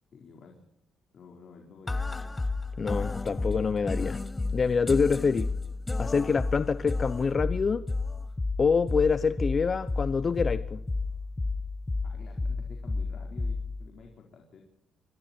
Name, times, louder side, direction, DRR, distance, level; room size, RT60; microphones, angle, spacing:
voice 1, 0.1-0.6 1.1-2.3 12.0-14.6, left 5 dB, 55° left, 4.6 m, -50 dB
sound 1, 1.9-13.9, left 3 dB, 15° left, 1.4 m, -32 dB
voice 2, 2.8-4.2 4.5-5.5 6.0-7.8 8.6-10.8, left 5 dB, 40° left, 0.9 m, -26 dB
27.5 x 21.5 x 4.6 m
cardioid pair, 90°, 0 cm